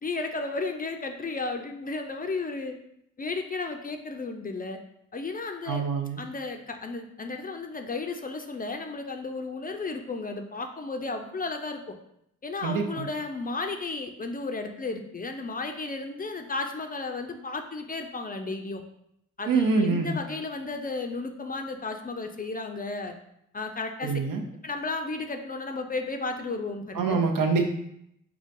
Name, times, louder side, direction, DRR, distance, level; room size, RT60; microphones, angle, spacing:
voice 1, 0.0-2.8 3.2-4.8 5.1-5.8 6.2-12.0 12.4-18.8 19.4-23.1 23.5-24.2 24.6-27.2, left 3 dB, 25° left, 5 dB, 0.4 m, -33 dB
voice 2, 5.7-6.2 12.6-13.1 19.5-20.1 24.0-24.4 26.9-27.6, right 4 dB, 75° right, 4 dB, 0.5 m, -25 dB
3.8 x 2.3 x 2.5 m, 0.76 s
cardioid pair, 50°, 33 cm